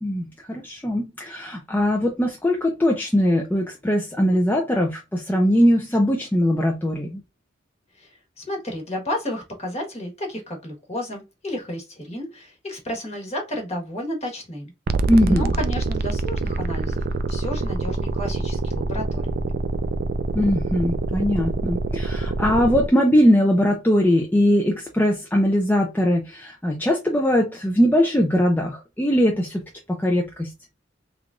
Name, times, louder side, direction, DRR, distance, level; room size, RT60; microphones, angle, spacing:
voice 1, 0.0-7.2 15.1-15.5 20.3-29.6 29.9-30.5, equal, 10° left, 0.5 m, -21 dB
voice 2, 7.9-14.7 15.3-19.4, left 1 dB, 35° left, 1.3 m, -32 dB
sound 1, 14.9-22.9, right 3 dB, 50° right, 0.3 m, -25 dB
3.6 x 3.3 x 2.4 m
head